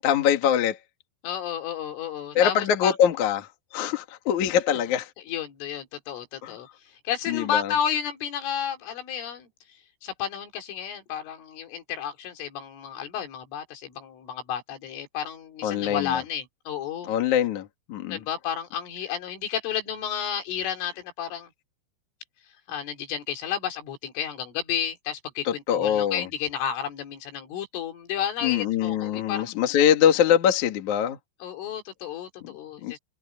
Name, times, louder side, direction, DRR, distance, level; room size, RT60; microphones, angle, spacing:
voice 1, 0.0-0.8 2.4-3.5 3.7-5.1 6.4-6.5 7.3-7.7 15.6-16.2 17.1-18.2 25.4-26.3 28.4-31.2 32.8-33.0, left 9 dB, 50° left, 2.5 m, -23 dB
voice 2, 1.2-3.0 3.7-3.9 5.3-17.1 18.1-21.5 22.7-29.5 31.4-33.0, left 9 dB, 75° left, 5.6 m, -32 dB
omnidirectional pair, 5.7 m